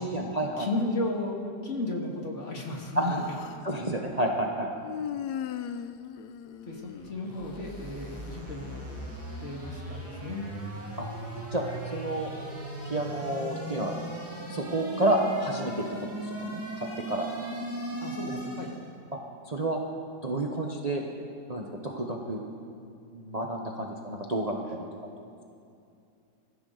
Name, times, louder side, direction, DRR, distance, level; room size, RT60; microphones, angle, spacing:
voice 1, 0.0-0.7 2.9-3.2 3.6-4.7 11.0-11.1 11.5-11.6 11.9-12.3 12.8-13.9 14.5-15.9 16.1-17.3 18.3-18.4 19.1-19.2 19.4-19.8 20.2-21.0 21.5-22.4 23.1-24.8 25.2-25.3, right 1 dB, 30° right, 1 dB, 0.9 m, -30 dB
voice 2, 0.6-3.2 6.7-8.8 9.4-10.5 18.0-18.7, left 2 dB, 45° left, 0 dB, 2.2 m, -34 dB
Human voice, 2.7-3.7 4.8-7.6, left 8 dB, 75° left, 1.2 m, -38 dB
sound 1, 6.7-18.9, right 1 dB, 10° right, 2.4 m, -38 dB
24.5 x 14.5 x 3.9 m, 2.6 s
omnidirectional pair, 1.8 m